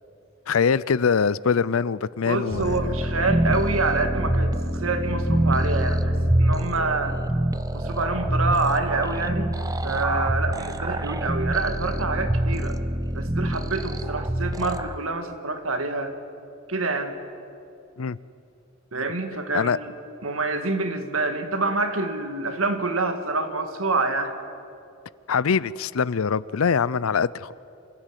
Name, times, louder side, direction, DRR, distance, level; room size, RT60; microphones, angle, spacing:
voice 1, 0.5-3.0 18.0-18.2 19.5-19.8 25.3-27.5, left 6 dB, 85° left, 20 dB, 0.5 m, -23 dB
voice 2, 2.2-6.1 6.4-7.2 7.7-9.5 9.8-12.8 13.1-16.1 16.7-17.2 18.9-19.9 20.2-24.3, right 3 dB, 80° right, 7 dB, 2.0 m, -26 dB
sound 1, 2.5-15.0, right 1 dB, 15° right, 0.7 m, -25 dB
27.0 x 14.5 x 9.2 m, 2.6 s
head